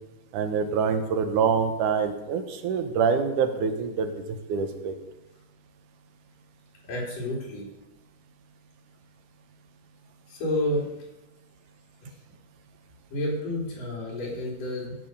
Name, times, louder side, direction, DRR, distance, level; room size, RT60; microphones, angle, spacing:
voice 1, 0.3-4.1 4.5-4.9, right 6 dB, 80° right, 8 dB, 2.5 m, -25 dB
voice 2, 6.8-7.7 10.3-10.9 13.1-15.0, left 1 dB, 85° left, -3 dB, 5.3 m, -30 dB
16.0 x 6.3 x 6.8 m, 0.98 s
omnidirectional pair, 3.7 m